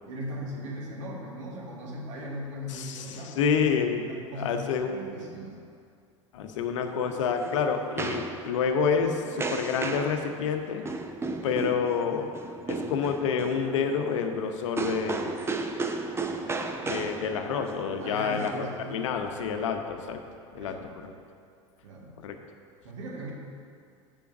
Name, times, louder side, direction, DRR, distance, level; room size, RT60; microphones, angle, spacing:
voice 1, 0.0-3.8 4.1-4.6 4.9-5.6 18.0-19.6 20.6-20.9 21.8-22.2 22.8-23.3, equal, 70° right, -2 dB, 1.9 m, -39 dB
voice 2, 2.7-5.0 6.3-10.8 11.4-12.3 12.7-15.3 16.8-20.2 20.5-20.8 21.0-21.1 22.2-22.4, left 6 dB, 70° left, 5 dB, 0.8 m, -28 dB
sound 1, 6.8-19.3, right 3 dB, 15° right, 0.7 m, -35 dB
6.9 x 5.7 x 7.1 m, 2.3 s
hypercardioid pair, 80°, 17 cm